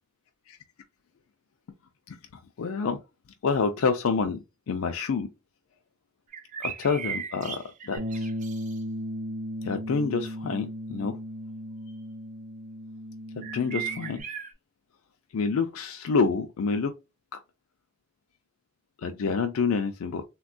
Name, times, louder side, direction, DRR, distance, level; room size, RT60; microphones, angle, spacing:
voice 1, 2.6-3.0 3.4-5.3 6.6-8.3 9.6-11.2 13.4-14.2 15.3-16.9 19.0-20.2, left 5 dB, 70° left, 0.4 m, -28 dB
sound 1, 6.3-8.8 13.4-14.5, right 8 dB, 35° right, 0.4 m, -37 dB
Bass guitar, 8.0-14.2, equal, 85° right, 0.6 m, -36 dB
3.5 x 2.2 x 2.5 m
head